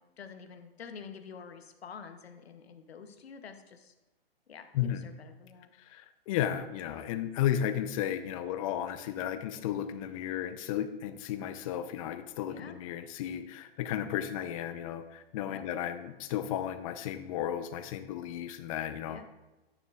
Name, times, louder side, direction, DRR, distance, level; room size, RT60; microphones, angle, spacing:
voice 1, 0.0-3.9 4.5-5.7 12.4-12.7 15.5-15.7 19.1-19.2, left 6 dB, 85° left, 8 dB, 0.7 m, -48 dB
voice 2, 5.8-19.3, left 10 dB, 35° left, 11 dB, 0.5 m, -34 dB
9.3 x 6.6 x 2.3 m, 1.1 s
hypercardioid pair, 130°, 30 cm